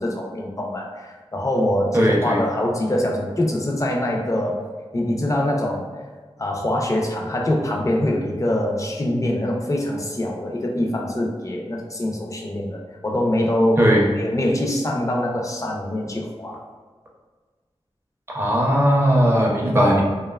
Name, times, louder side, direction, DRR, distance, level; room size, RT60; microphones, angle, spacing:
voice 1, 0.0-4.6 4.9-5.8 6.4-16.6, left 1 dB, 30° left, -1 dB, 0.5 m, -24 dB
voice 2, 1.9-2.4 13.8-14.1 18.3-20.0, equal, 20° right, -2 dB, 0.5 m, -18 dB
2.7 x 2.2 x 2.3 m, 1.4 s
wide cardioid pair, 65°, 11 cm